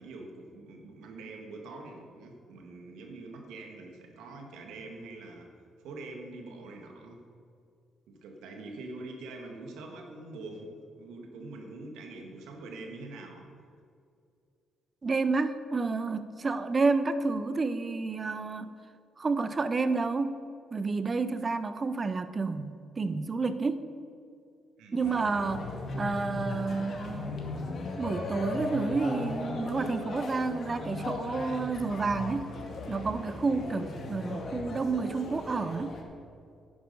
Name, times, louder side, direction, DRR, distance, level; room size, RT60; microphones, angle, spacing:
voice 1, 0.0-5.5 5.8-7.2 8.1-13.5 24.8-25.2 33.5-33.7, right 2 dB, 90° right, 2 dB, 1.7 m, -44 dB
voice 2, 15.0-18.7 19.2-20.4 20.7-23.9 24.9-27.4 28.0-32.5 32.9-35.9, right 4 dB, 30° right, 12 dB, 0.7 m, -30 dB
sound 1, 25.0-36.0, left 2 dB, 55° left, 2.0 m, -37 dB
10.5 x 9.6 x 5.5 m, 2.3 s
cardioid pair, 90°, 0 cm